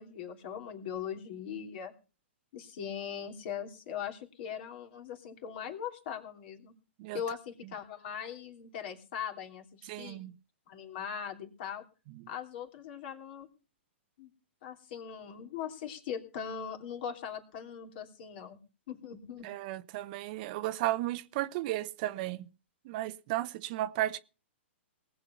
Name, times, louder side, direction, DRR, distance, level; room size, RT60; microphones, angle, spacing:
voice 1, 0.0-1.9 2.5-6.7 7.1-10.2 10.7-11.8 12.3-13.5 14.2-14.3 14.6-18.6 18.9-19.5, left 8 dB, 50° left, 3.0 m, -40 dB
voice 2, 9.9-10.3 19.4-22.5 22.8-24.2, right 15 dB, 45° right, 0.8 m, -34 dB
19.5 x 7.8 x 5.8 m
hypercardioid pair, 130°, 7 cm